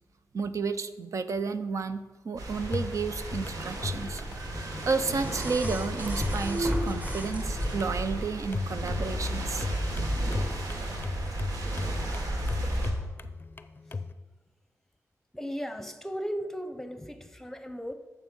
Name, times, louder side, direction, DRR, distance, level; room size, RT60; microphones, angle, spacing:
voice 1, 0.3-9.7, right 4 dB, 60° right, 11 dB, 0.6 m, -32 dB
sound 1, 2.4-12.9, right 1 dB, 80° right, 1.8 m, -34 dB
sound 2, 2.6-14.1, left 4 dB, 35° left, 0.5 m, -38 dB
sound 3, 4.3-8.1 9.3-9.4, equal, 25° right, 1.3 m, -33 dB
voice 2, 15.3-17.9, equal, 5° left, 9 dB, 0.8 m, -36 dB
8.9 x 6.6 x 6.2 m, 1.2 s
wide cardioid pair, 115°, 6 cm